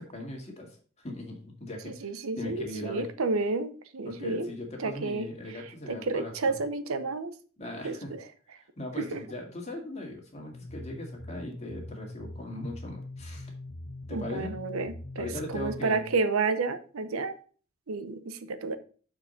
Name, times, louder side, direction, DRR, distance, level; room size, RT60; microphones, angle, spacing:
voice 1, 0.0-2.1 2.4-3.0 4.1-6.5 7.6-8.1 8.8-13.5 14.1-14.6 15.2-16.1, left 1 dB, 30° left, 0 dB, 2.1 m, -39 dB
voice 2, 1.9-4.5 4.8-5.3 5.9-7.3 7.8-8.2 9.1-9.2 14.1-17.4 17.9-18.8, right 3 dB, 90° right, 11 dB, 0.8 m, -31 dB
sound 1, 10.5-15.9, left 1 dB, 80° left, 1.0 m, -42 dB
6.7 x 4.8 x 5.1 m, 0.41 s
head